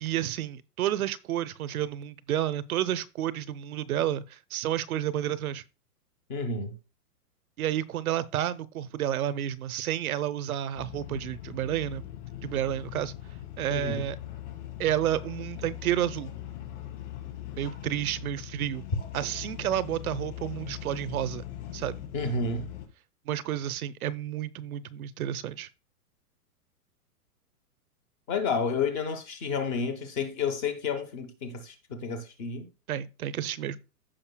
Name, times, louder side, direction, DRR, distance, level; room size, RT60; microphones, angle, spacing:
voice 1, 0.0-5.6 7.6-12.0 12.4-13.1 13.6-14.2 14.8-16.3 17.6-18.8 19.1-21.4 21.7-22.0 23.3-25.7 32.9-33.8, right 11 dB, 65° right, 0.7 m, -30 dB
voice 2, 6.3-6.8 13.7-14.1 22.1-22.7 28.3-32.7, left 4 dB, 15° left, 0.6 m, -30 dB
sound 1, 10.8-22.9, left 12 dB, 50° left, 3.3 m, -41 dB
15.0 x 5.3 x 2.2 m
hypercardioid pair, 155°, 46 cm